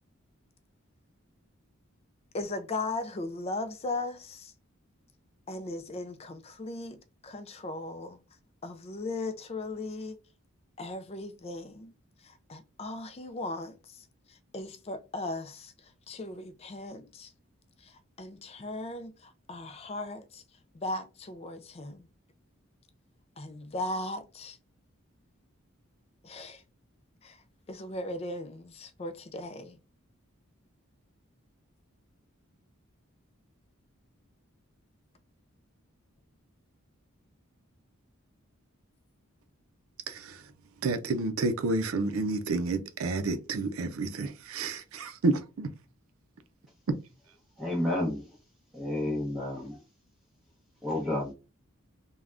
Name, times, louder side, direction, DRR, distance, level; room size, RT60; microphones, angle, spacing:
voice 1, 2.3-4.5 5.5-8.2 8.6-10.2 10.8-11.9 12.2-17.3 17.8-20.4 20.7-22.1 23.4-24.6 26.2-26.6 27.2-27.4 27.7-29.8, left 2 dB, 30° left, 0.4 m, -38 dB
voice 2, 40.1-40.4 40.8-45.7, right 3 dB, 75° right, 0.5 m, -30 dB
voice 3, 47.6-48.3 48.7-49.8 50.8-51.3, left 1 dB, ahead, 0.8 m, -30 dB
3.4 x 2.2 x 2.4 m
head